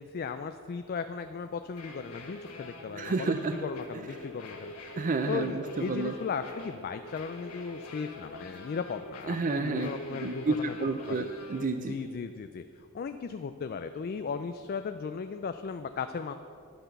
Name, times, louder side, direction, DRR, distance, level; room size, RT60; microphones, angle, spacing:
voice 1, 0.0-4.7 5.3-10.8 11.1-11.3 11.8-16.3, left 5 dB, 45° left, 8 dB, 0.3 m, -36 dB
sound 1, 1.7-11.6, left 2 dB, 90° left, 1.6 m, -46 dB
voice 2, 3.0-3.5 5.0-6.1 9.3-11.9, right 3 dB, 35° right, 7 dB, 0.4 m, -30 dB
11.5 x 5.9 x 6.6 m, 2.6 s
head